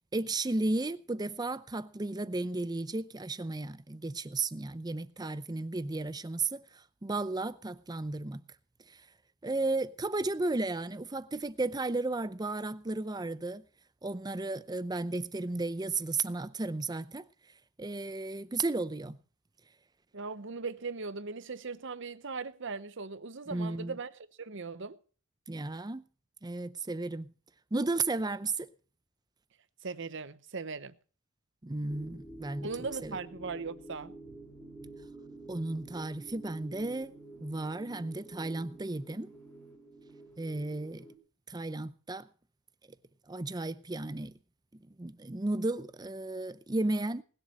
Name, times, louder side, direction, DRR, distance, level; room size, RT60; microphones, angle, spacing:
voice 1, 0.1-6.6 7.0-8.4 8.9-9.0 9.4-13.6 14.0-17.2 17.8-19.2 23.5-24.0 25.5-26.0 26.4-27.3 27.7-28.7 31.6-32.7 33.0-33.2 35.5-37.1 37.4-39.3 40.4-41.1 41.5-42.3 43.3-44.3 44.9-47.2, right 2 dB, 20° right, 0.6 m, -34 dB
voice 2, 20.1-25.0 29.8-31.0 32.6-34.1, right 4 dB, 60° right, 0.9 m, -39 dB
sound 1, 31.9-41.2, right 2 dB, 10° left, 4.0 m, -49 dB
19.5 x 7.4 x 6.4 m
head